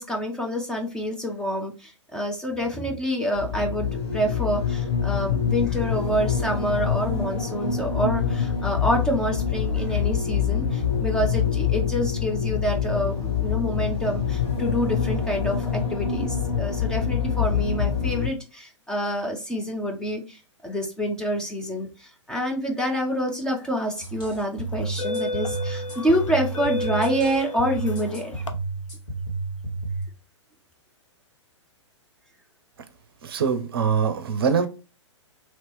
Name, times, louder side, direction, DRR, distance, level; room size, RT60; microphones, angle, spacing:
voice 1, 0.0-28.4, equal, 5° left, 0.4 m, -27 dB
sound 1, 3.3-18.3, left 7 dB, 60° left, 1.5 m, -25 dB
sound 2, 23.7-24.0 24.7-28.5, left 2 dB, 80° left, 0.6 m, -32 dB
sound 3, 24.0-30.0, right 3 dB, 45° left, 1.9 m, -31 dB
voice 2, 33.2-34.7, right 6 dB, 50° right, 0.5 m, -23 dB
3.0 x 2.9 x 3.1 m
figure-of-eight pair, 115°, 16 cm